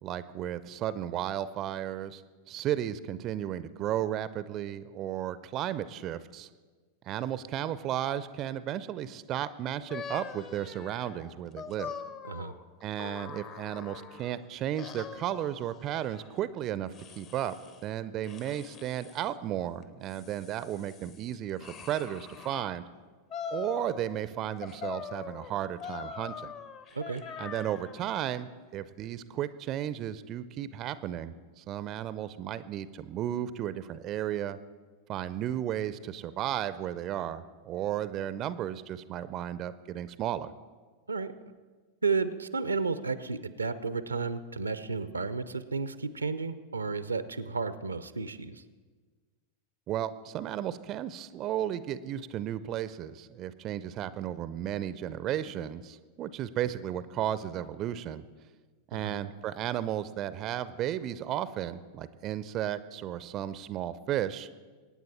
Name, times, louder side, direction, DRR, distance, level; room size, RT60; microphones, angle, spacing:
voice 1, 0.0-2.2 2.5-6.5 7.0-11.9 12.8-17.6 17.8-22.8 23.5-26.5 27.4-34.6 35.1-40.5 49.9-58.2 58.9-64.5, right 11 dB, 35° right, 15 dB, 0.5 m, -34 dB
sound 1, 9.9-14.4 14.8-16.3 16.9-17.8 18.2-19.2 19.8-22.7 23.3-24.3 24.6-28.1, left 6 dB, 35° left, 1.0 m, -43 dB
voice 2, 42.0-48.6 58.9-59.2, right 4 dB, 80° right, 14 dB, 0.6 m, -32 dB
23.5 x 9.3 x 4.3 m, 1.4 s
figure-of-eight pair, 90°, 0 cm